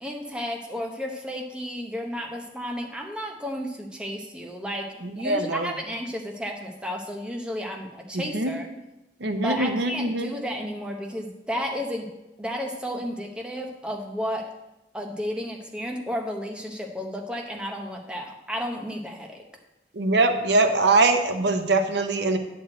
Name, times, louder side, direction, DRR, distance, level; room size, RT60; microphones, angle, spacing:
voice 1, 0.0-8.7 9.3-14.5 14.9-19.4, equal, 5° right, 1 dB, 0.9 m, -32 dB
voice 2, 5.2-5.7 8.1-8.5 9.2-10.3 20.0-22.4, right 2 dB, 80° right, 7 dB, 0.9 m, -22 dB
9.4 x 4.5 x 7.6 m, 0.98 s
head